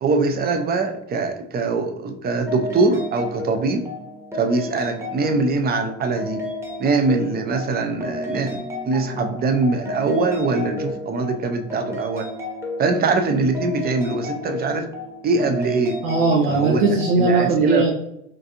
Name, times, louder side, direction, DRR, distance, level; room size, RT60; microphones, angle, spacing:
voice 1, 0.0-3.8 4.4-6.4 6.8-8.6 8.8-12.3 12.8-14.9 15.2-16.0 16.5-16.9 17.2-17.9, right 3 dB, 25° right, 6 dB, 0.4 m, -22 dB
sound 1, 2.5-17.2, left 2 dB, 5° right, 0.8 m, -32 dB
voice 2, 16.0-17.9, right 3 dB, 85° right, -1 dB, 0.7 m, -19 dB
3.7 x 2.4 x 2.7 m, 0.78 s
hypercardioid pair, 85°, 41 cm